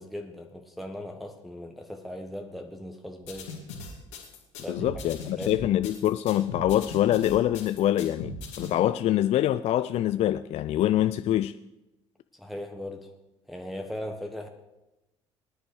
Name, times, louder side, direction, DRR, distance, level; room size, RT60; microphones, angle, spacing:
voice 1, 0.0-3.5 4.6-4.9 5.4-5.8 12.3-13.1 13.5-14.5, left 1 dB, ahead, 3 dB, 1.1 m, -38 dB
sound 1, 3.2-8.7, left 3 dB, 75° left, 2.2 m, -39 dB
voice 2, 4.7-11.5, left 12 dB, 45° left, 13 dB, 0.4 m, -25 dB
20.0 x 10.0 x 3.2 m, 0.97 s
figure-of-eight pair, 55°, 15 cm